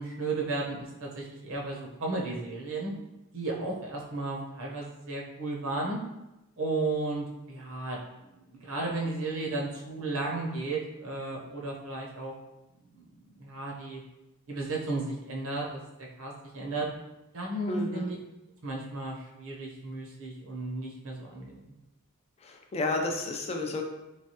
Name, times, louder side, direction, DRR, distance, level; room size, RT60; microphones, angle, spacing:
voice 1, 0.0-2.9 3.3-6.0 6.6-12.3 12.9-14.0 14.5-16.9 17.3-18.2 18.6-21.7, right 2 dB, 60° right, -2 dB, 0.8 m, -34 dB
voice 2, 17.7-18.1 22.4-23.8, left 2 dB, 30° left, 2 dB, 0.3 m, -31 dB
3.2 x 3.2 x 2.8 m, 0.97 s
head